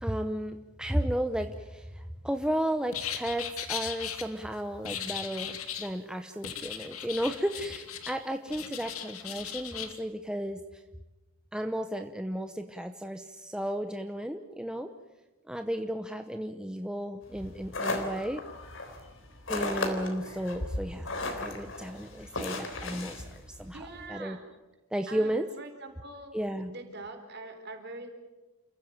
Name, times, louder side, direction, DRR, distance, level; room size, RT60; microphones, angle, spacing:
voice 1, 0.0-10.8 11.5-14.9 15.5-18.4 19.5-23.2 23.6-24.4 24.9-25.5 26.3-26.7, equal, 5° right, 6 dB, 0.8 m, -33 dB
sound 1, 2.9-4.2 4.8-5.9 6.4-8.2 8.5-9.9, left 9 dB, 90° left, 2.4 m, -37 dB
sound 2, 17.3-24.0, left 2 dB, 60° left, 3.8 m, -36 dB
voice 2, 23.7-24.4 25.1-26.3 26.7-28.1, right 2 dB, 50° right, 6 dB, 4.0 m, -43 dB
28.5 x 16.0 x 8.9 m, 1.1 s
head